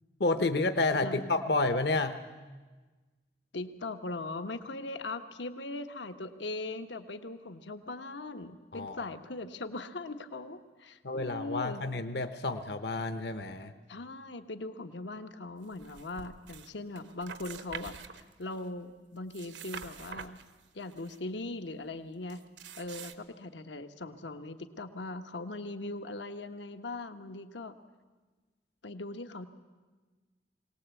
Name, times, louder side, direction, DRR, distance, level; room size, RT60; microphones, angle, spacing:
voice 1, 0.2-2.2 8.7-9.1 11.0-13.7, left 2 dB, 65° left, 9 dB, 1.0 m, -30 dB
voice 2, 1.0-1.3 3.5-11.8 13.9-17.9 18.4-20.4 20.7-22.4 22.8-27.8 28.8-29.5, left 2 dB, 85° left, 8 dB, 1.2 m, -40 dB
sound 1, 15.7-16.7 17.0-18.7 19.2-21.2 22.3-23.2, right 6 dB, 80° right, 1.1 m, -46 dB
22.5 x 18.5 x 8.3 m, 1.3 s
head